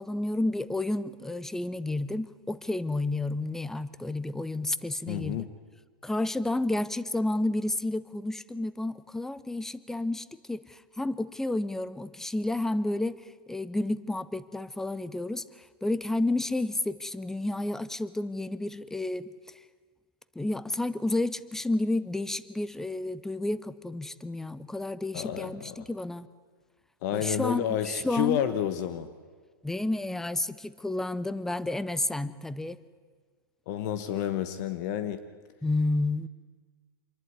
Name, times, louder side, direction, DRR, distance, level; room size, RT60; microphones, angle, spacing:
voice 1, 0.0-5.5 6.0-13.2 13.5-15.4 15.8-19.3 20.4-26.3 27.1-28.4 29.6-32.8 35.6-36.3, left 2 dB, 5° left, 17 dB, 0.6 m, -31 dB
voice 2, 5.1-5.5 25.1-25.9 27.0-29.1 33.7-35.3, left 10 dB, 50° left, 12 dB, 1.2 m, -30 dB
26.0 x 11.5 x 9.6 m, 1.5 s
hypercardioid pair, 135°, 12 cm